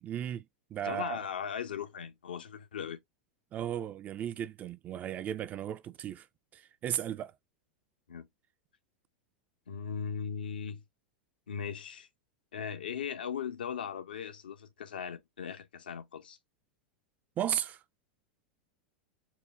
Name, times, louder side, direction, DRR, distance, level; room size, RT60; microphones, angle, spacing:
voice 1, 0.0-0.4 0.7-1.2 3.5-6.3 6.5-7.3 17.4-17.8, right 10 dB, 30° right, 0.4 m, -35 dB
voice 2, 0.8-3.0 8.1-8.3 9.7-10.8 11.5-12.1 12.5-16.4, left 7 dB, 75° left, 0.8 m, -38 dB
4.6 x 2.1 x 4.0 m
hypercardioid pair, 90°, 5 cm